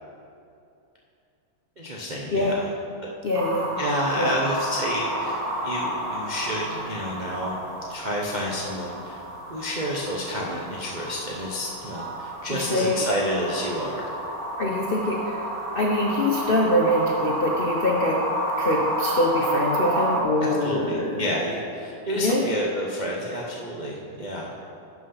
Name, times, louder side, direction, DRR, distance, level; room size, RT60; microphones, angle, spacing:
voice 1, 1.8-2.6 3.8-7.5 7.9-9.1 9.5-14.1 20.6-24.6, equal, 55° right, -4 dB, 0.5 m, -29 dB
voice 2, 3.2-3.7 4.2-4.3 12.5-13.0 14.6-15.5 15.7-18.2 18.6-21.2 22.1-22.4, left 1 dB, 70° left, -1 dB, 0.5 m, -24 dB
sound 1, 3.3-20.2, right 1 dB, 70° right, 1.9 m, -31 dB
11.0 x 6.2 x 5.6 m, 2.7 s
omnidirectional pair, 2.3 m